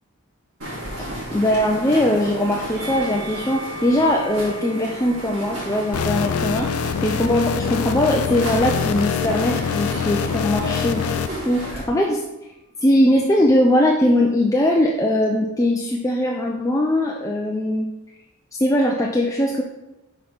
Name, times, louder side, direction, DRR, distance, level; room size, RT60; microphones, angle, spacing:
sound 1, 0.6-11.8, equal, 75° right, 2.4 m, -33 dB
voice 1, 1.3-11.1 11.4-12.2 12.8-17.9 18.5-19.6, left 1 dB, 15° left, 0 dB, 0.4 m, -20 dB
Musical instrument, 2.7-9.1 10.0-11.0, equal, 5° right, 2.3 m, -40 dB
sound 2, 5.9-11.3, left 6 dB, 80° left, 0.4 m, -24 dB
5.8 x 4.2 x 5.1 m, 0.98 s
head